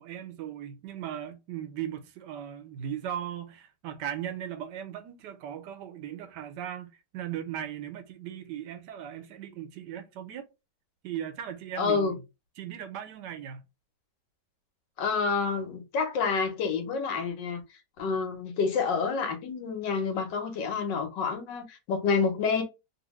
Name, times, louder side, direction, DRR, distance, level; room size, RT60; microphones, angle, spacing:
voice 1, 0.0-10.4 11.0-12.2 12.6-13.7, right 10 dB, 80° right, 1.3 m, -38 dB
voice 2, 11.8-12.1 15.0-17.6 18.0-22.6, left 5 dB, 90° left, 1.5 m, -28 dB
2.9 x 2.7 x 3.0 m
omnidirectional pair, 1.9 m